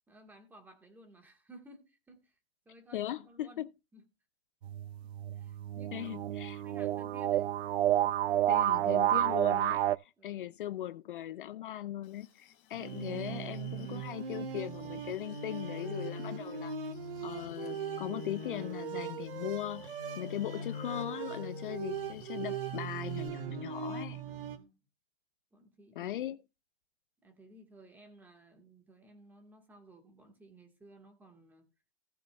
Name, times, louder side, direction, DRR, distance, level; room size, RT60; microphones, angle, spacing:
voice 1, 0.1-2.4 2.6-3.7 3.9-4.0 5.0-6.1 6.6-7.6 10.2-10.4 24.2-24.8 25.5-26.2 27.2-31.7, right 1 dB, 5° right, 1.6 m, -57 dB
voice 2, 2.9-3.7 5.9-6.6 8.5-16.8 17.2-24.2 26.0-26.4, left 13 dB, 55° left, 0.5 m, -39 dB
sound 1, 4.6-10.0, right 12 dB, 75° right, 0.6 m, -30 dB
sound 2, 12.0-23.3, left 10 dB, 35° left, 3.2 m, -60 dB
sound 3, 12.7-24.6, right 5 dB, 60° right, 1.8 m, -39 dB
17.5 x 6.7 x 2.4 m
hypercardioid pair, 170°, 32 cm